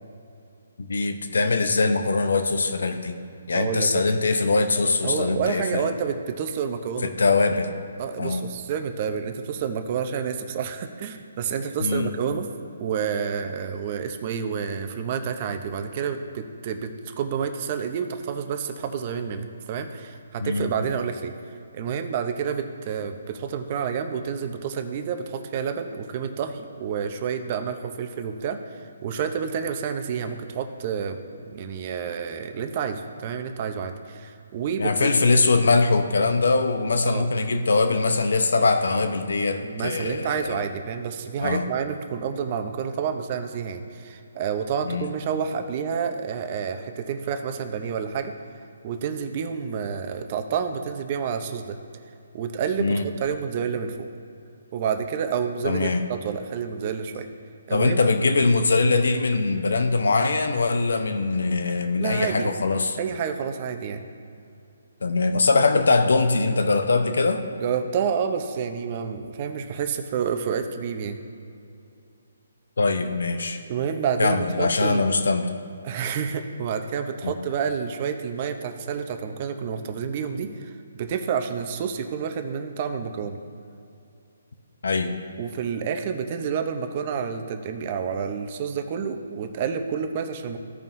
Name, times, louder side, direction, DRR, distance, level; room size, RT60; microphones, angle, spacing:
voice 1, 0.8-3.1 3.5-5.8 7.0-7.7 8.2-8.4 11.8-12.1 20.4-20.7 34.8-40.6 41.4-41.6 44.8-45.1 52.8-53.1 55.6-56.0 57.7-63.0 65.0-67.4 72.8-73.6 74.2-75.5 77.2-77.3 84.8-85.1, left 3 dB, 80° left, 7 dB, 0.8 m, -22 dB
voice 2, 3.5-4.1 5.0-7.1 8.0-12.5 12.8-21.3 21.7-35.2 37.0-37.3 39.6-48.3 48.8-51.8 52.3-54.1 54.7-57.3 57.7-58.0 62.0-62.5 63.0-64.1 67.6-71.2 73.7-75.0 75.8-83.4 85.4-90.6, right 7 dB, 35° right, 7 dB, 0.7 m, -29 dB
15.0 x 5.4 x 2.7 m, 2.6 s
hypercardioid pair, 160°, 0 cm